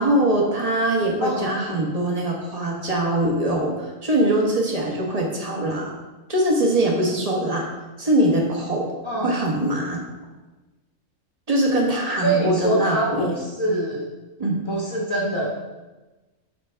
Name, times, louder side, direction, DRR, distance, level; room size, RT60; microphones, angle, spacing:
voice 1, 0.0-5.9 6.3-7.7 8.0-8.8 9.2-10.0 11.5-13.3 14.4-14.6, right 1 dB, 30° right, -1 dB, 1.4 m, -22 dB
voice 2, 1.2-1.5 9.0-9.3 12.2-14.1 14.7-15.5, right 1 dB, 25° left, -4 dB, 1.1 m, -24 dB
11.0 x 4.2 x 3.5 m, 1.2 s
omnidirectional pair, 1.4 m